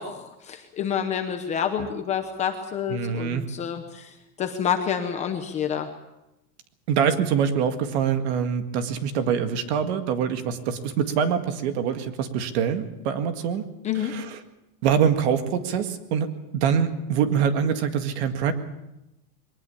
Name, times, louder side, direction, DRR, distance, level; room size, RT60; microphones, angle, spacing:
voice 1, 0.0-5.9 13.8-14.1, left 8 dB, 15° left, 6 dB, 0.8 m, -28 dB
voice 2, 2.9-3.4 6.9-13.7 14.0-14.4 14.8-18.5, right 7 dB, 45° right, 8 dB, 2.0 m, -24 dB
22.5 x 19.0 x 7.1 m, 0.91 s
supercardioid pair, 175°, 45 cm